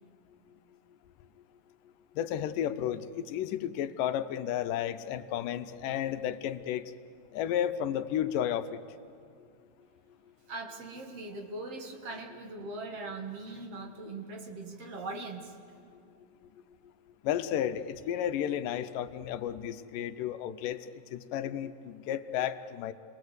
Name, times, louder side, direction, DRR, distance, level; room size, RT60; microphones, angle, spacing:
voice 1, 2.2-6.8 7.3-8.8 17.2-20.8 21.1-22.9, left 10 dB, 85° left, 11 dB, 2.4 m, -32 dB
voice 2, 10.5-15.6, right 2 dB, 50° right, 2 dB, 2.5 m, -40 dB
29.0 x 21.0 x 8.1 m, 2.3 s
omnidirectional pair, 3.8 m